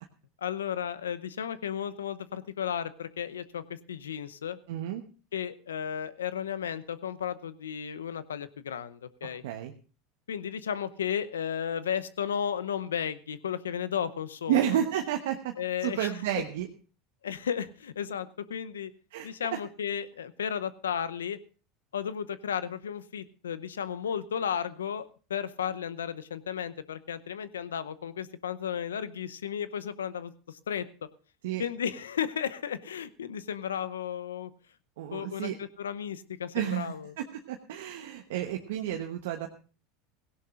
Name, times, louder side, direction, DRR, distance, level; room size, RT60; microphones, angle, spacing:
voice 1, 0.4-4.6 5.3-9.4 10.3-14.6 15.6-16.4 17.2-18.9 19.2-21.4 21.9-31.1 31.6-34.5 35.1-37.1, left 8 dB, 90° left, 15 dB, 0.7 m, -34 dB
voice 2, 4.7-5.0 9.4-9.7 14.5-15.5 15.8-16.7 19.1-19.3 31.4-31.6 35.0-35.6 36.5-39.5, right 11 dB, 75° right, 4 dB, 1.1 m, -31 dB
17.0 x 17.0 x 2.5 m, 0.36 s
hypercardioid pair, 90°, 0 cm